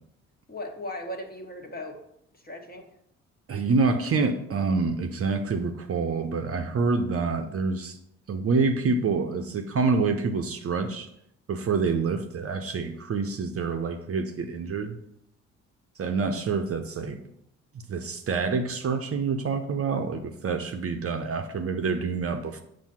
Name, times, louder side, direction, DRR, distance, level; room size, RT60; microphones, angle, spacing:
voice 1, 0.5-2.0 2.3-2.9, left 1 dB, 25° left, 1.5 m, -37 dB
voice 2, 3.5-8.0 8.3-11.1 11.5-15.0 16.0-17.2 17.9-22.6, right 4 dB, 40° right, 0.8 m, -27 dB
7.2 x 2.7 x 5.6 m
hypercardioid pair, 50°, 35 cm